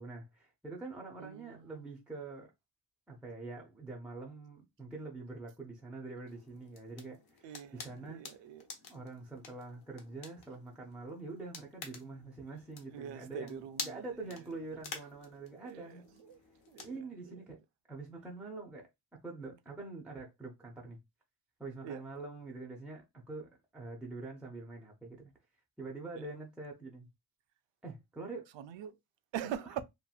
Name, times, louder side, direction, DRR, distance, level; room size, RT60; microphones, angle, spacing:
voice 1, 0.0-2.5 3.1-8.2 8.9-16.0 16.8-17.6 17.9-18.9 19.2-21.0 21.6-25.3 25.8-27.1 27.8-28.5 29.4-29.5, right 3 dB, 5° right, 0.6 m, -45 dB
voice 2, 1.2-1.8 7.4-8.7 12.9-14.0 15.6-16.0 16.3-16.4 16.7-16.9 17.3-17.4 21.8-22.0 26.2-26.3 28.5-28.9 29.3-29.8, right 9 dB, 75° right, 0.5 m, -43 dB
sound 1, 6.3-17.0, left 5 dB, 55° left, 0.9 m, -49 dB
2.9 x 2.5 x 2.3 m
cardioid pair, 120°, 44 cm